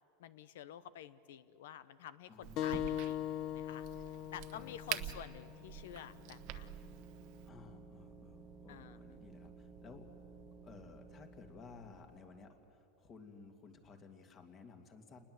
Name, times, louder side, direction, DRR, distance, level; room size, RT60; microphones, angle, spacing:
voice 1, 0.2-3.3 3.5-3.9 4.3-6.9 8.7-9.0, left 10 dB, 85° left, 15 dB, 0.9 m, -50 dB
voice 2, 2.3-2.9 4.5-5.2 7.4-10.0 10.6-15.2, left 4 dB, 30° left, 5 dB, 2.4 m, -56 dB
Crack, 2.4-7.5, right 14 dB, 55° right, 1.1 m, -46 dB
sound 1, 2.6-7.7, left 11 dB, 50° left, 0.9 m, -42 dB
sound 2, 5.0-12.8, right 6 dB, 25° right, 1.1 m, -57 dB
29.0 x 20.5 x 7.9 m, 2.8 s
supercardioid pair, 140°, 0 cm